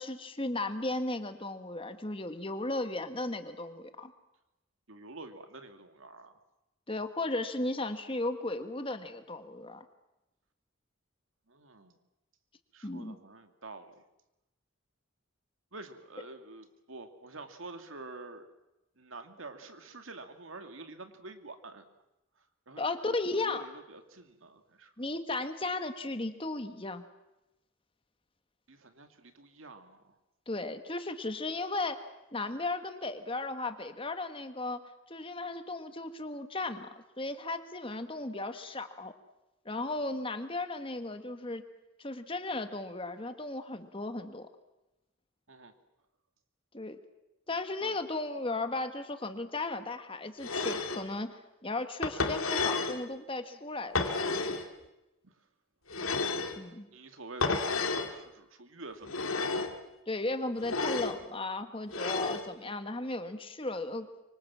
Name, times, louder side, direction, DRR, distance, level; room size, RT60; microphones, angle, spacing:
voice 1, 0.0-4.1 6.9-9.8 12.8-13.2 22.8-23.7 25.0-27.0 30.5-32.0 32.3-34.8 35.1-36.9 37.2-39.1 39.6-41.6 42.0-44.5 46.7-47.0 47.5-53.9 56.6-56.9 60.1-64.1, left 2 dB, 25° left, 8 dB, 1.5 m, -35 dB
voice 2, 4.9-6.3 11.5-12.0 12.7-14.0 15.7-18.5 19.0-21.8 22.7-24.9 28.7-30.2 45.5-45.7 47.8-48.0 55.2-55.3 56.9-59.6, right 3 dB, 75° right, 7 dB, 2.3 m, -48 dB
sound 1, 50.4-51.0 52.0-53.0 53.9-54.7 55.9-56.6 57.4-58.1 59.0-59.7 60.6-61.2 61.9-62.4, left 3 dB, 90° left, 2.7 m, -31 dB
25.0 x 25.0 x 7.5 m, 0.95 s
head